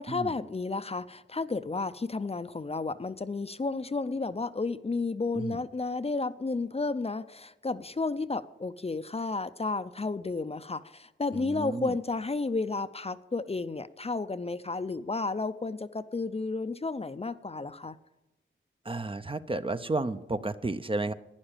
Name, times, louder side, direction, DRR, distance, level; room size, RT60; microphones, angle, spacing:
voice 1, 0.0-18.0, left 3 dB, 30° left, 12 dB, 0.6 m, -32 dB
voice 2, 11.3-12.0 18.8-21.1, right 2 dB, 25° right, 11 dB, 0.6 m, -32 dB
11.5 x 10.0 x 9.0 m, 0.99 s
wide cardioid pair, 70°, 20 cm